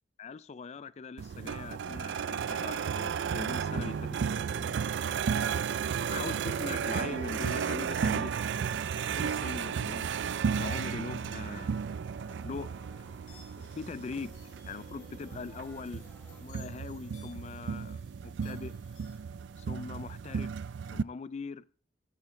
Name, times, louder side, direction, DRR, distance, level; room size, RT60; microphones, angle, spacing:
voice 1, 0.2-4.8 6.1-8.3 8.9-10.1 10.6-12.0 12.4-12.7 13.7-14.4 14.6-16.0 16.4-18.7 19.6-20.5 20.9-21.6, left 4 dB, 35° left, 0.4 m, -41 dB
sound 1, 1.2-21.0, right 7 dB, 70° right, 0.3 m, -34 dB
sound 2, 2.8-16.4, equal, 10° left, 2.9 m, -59 dB
sound 3, 12.3-19.2, left 3 dB, 90° left, 3.4 m, -58 dB
14.0 x 8.8 x 3.1 m
head